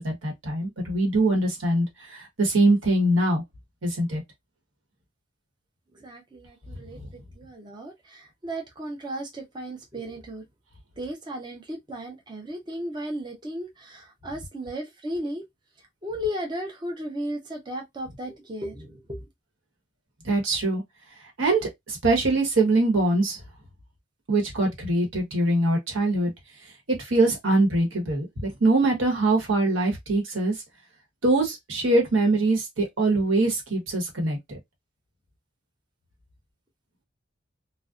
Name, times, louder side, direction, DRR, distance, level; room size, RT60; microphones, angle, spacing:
voice 1, 0.0-3.4 3.8-4.2 20.2-20.8 21.4-23.4 24.3-26.3 27.0-30.5 31.2-34.6, right 2 dB, 90° right, 1.0 m, -23 dB
voice 2, 5.9-7.0 7.4-10.4 11.0-15.4 16.0-19.2, equal, 25° right, 0.5 m, -35 dB
2.5 x 2.1 x 2.3 m
head